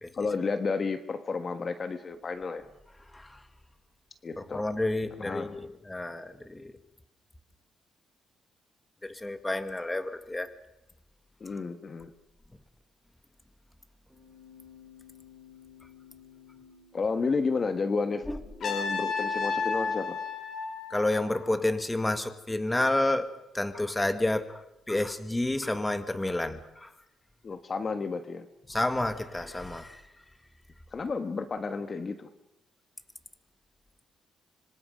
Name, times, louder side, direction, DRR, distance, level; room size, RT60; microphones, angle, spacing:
voice 1, 0.1-2.7 4.2-4.6 5.2-5.6 11.4-12.1 16.9-18.3 18.6-20.2 27.4-28.5 30.9-32.3, left 4 dB, 40° left, 9 dB, 1.4 m, -31 dB
voice 2, 3.1-3.4 4.4-6.7 9.0-10.5 11.5-11.6 18.3-18.4 20.9-26.9 28.7-30.0, left 1 dB, 15° left, 10 dB, 1.8 m, -30 dB
Keyboard (musical), 14.1-20.0, left 2 dB, 5° right, 4.7 m, -52 dB
Trumpet, 18.6-21.6, left 5 dB, 60° left, 5.4 m, -32 dB
26.0 x 25.0 x 5.2 m, 0.87 s
cardioid pair, 90°, 0 cm